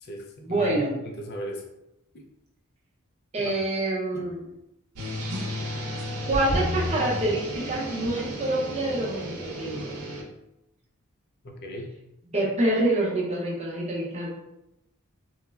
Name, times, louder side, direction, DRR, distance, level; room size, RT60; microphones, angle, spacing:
voice 1, 0.4-1.0 3.3-4.4 6.3-10.0 12.3-14.3, right 1 dB, 30° right, -3 dB, 0.6 m, -26 dB
voice 2, 1.0-1.6 2.1-2.2 3.4-3.5 4.1-4.2 11.4-11.9, right 1 dB, 45° left, 2 dB, 0.4 m, -37 dB
sound 1, 4.9-10.2, equal, 85° right, 0.7 m, -32 dB
3.0 x 2.0 x 2.2 m, 0.86 s
head